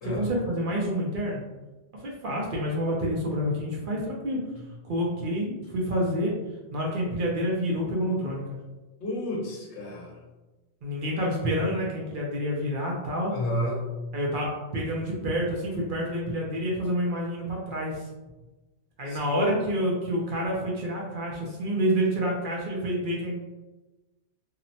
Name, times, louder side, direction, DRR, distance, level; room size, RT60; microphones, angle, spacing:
voice 1, 0.0-1.4 1.9-4.4 4.8-6.3 6.7-8.6 10.8-13.3 14.1-18.0 19.0-23.3, equal, 60° right, -3 dB, 0.6 m, -28 dB
voice 2, 9.0-10.1 13.3-14.1 19.1-19.5, left 1 dB, 75° left, -2 dB, 1.0 m, -31 dB
2.8 x 2.0 x 2.6 m, 1.1 s
omnidirectional pair, 1.2 m